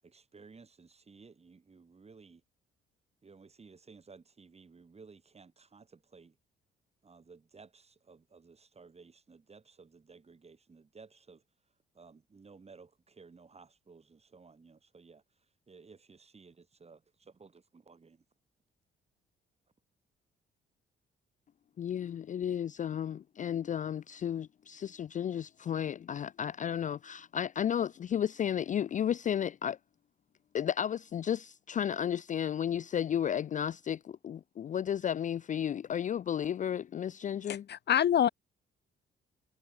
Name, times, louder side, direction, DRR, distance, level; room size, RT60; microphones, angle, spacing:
voice 1, 0.0-2.4 3.2-6.4 7.0-11.4 11.9-15.2 15.7-18.2, right 4 dB, 30° right, 7.4 m, -56 dB
voice 2, 21.8-29.8 30.5-37.7, left 9 dB, 40° left, 0.4 m, -33 dB
voice 3, 37.5-38.3, left 10 dB, 60° left, 1.3 m, -26 dB
cardioid pair, 90°, 20 cm